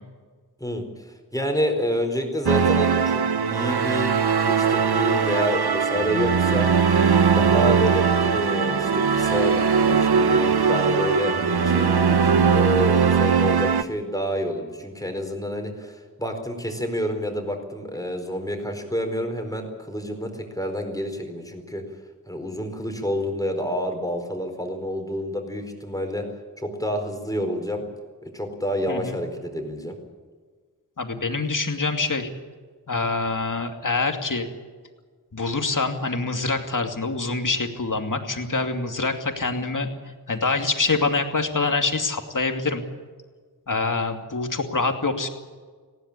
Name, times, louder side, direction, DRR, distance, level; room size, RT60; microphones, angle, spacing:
voice 1, 0.6-6.7 7.3-21.8 22.3-26.3 26.6-27.8 28.2-30.0, equal, 10° left, 4 dB, 4.4 m, -28 dB
sound 1, 2.5-13.8, right 6 dB, 70° right, 1.0 m, -20 dB
voice 2, 31.0-32.3 32.9-34.5 35.3-39.9 40.3-42.8 43.7-45.3, left 3 dB, 50° left, 5 dB, 2.6 m, -25 dB
19.5 x 16.5 x 10.0 m, 1.5 s
wide cardioid pair, 75°, 39 cm